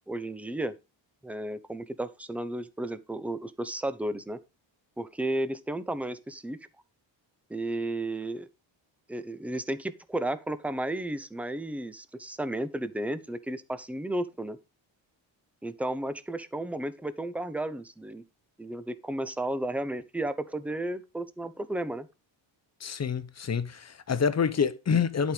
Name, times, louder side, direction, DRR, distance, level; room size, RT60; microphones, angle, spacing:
voice 1, 0.1-0.7 1.2-4.4 5.0-6.6 7.5-8.5 9.1-14.6 15.6-18.2 18.6-22.1, right 1 dB, 5° right, 0.7 m, -33 dB
voice 2, 22.8-25.3, left 6 dB, 35° left, 0.9 m, -27 dB
11.0 x 5.3 x 5.0 m
cardioid pair, 135°, 47 cm